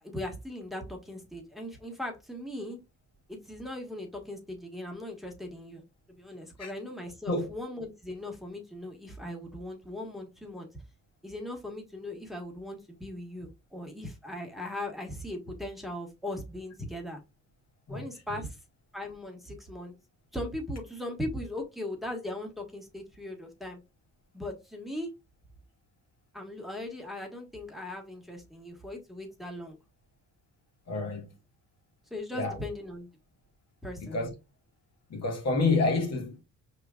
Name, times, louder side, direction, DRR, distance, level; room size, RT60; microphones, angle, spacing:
voice 1, 0.0-2.8 3.3-5.8 6.1-10.7 11.2-17.2 17.9-18.6 18.9-19.9 20.3-23.8 24.3-25.1 26.3-29.8 30.9-31.0 32.1-33.1 33.8-34.2, left 1 dB, ahead, 1.5 m, -39 dB
voice 2, 30.9-31.3 32.3-32.6 34.1-34.3 35.1-36.4, left 3 dB, 55° left, 1.8 m, -28 dB
5.0 x 3.7 x 2.3 m
cardioid pair, 90°, 30 cm